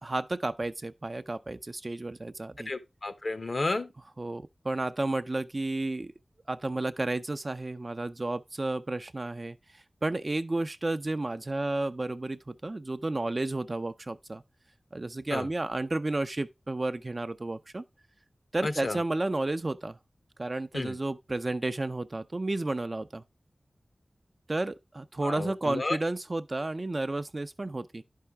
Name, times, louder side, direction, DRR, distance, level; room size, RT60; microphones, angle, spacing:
voice 1, 0.0-2.7 4.2-6.1 6.5-9.6 10.0-14.4 14.9-17.8 18.5-20.0 20.4-23.2 24.5-28.0, right 2 dB, 40° right, 0.5 m, -32 dB
voice 2, 2.7-3.9 15.3-15.5 18.6-19.0 20.7-20.9 25.2-26.0, left 2 dB, 55° left, 0.9 m, -32 dB
11.0 x 5.6 x 3.4 m
wide cardioid pair, 75°, 0 cm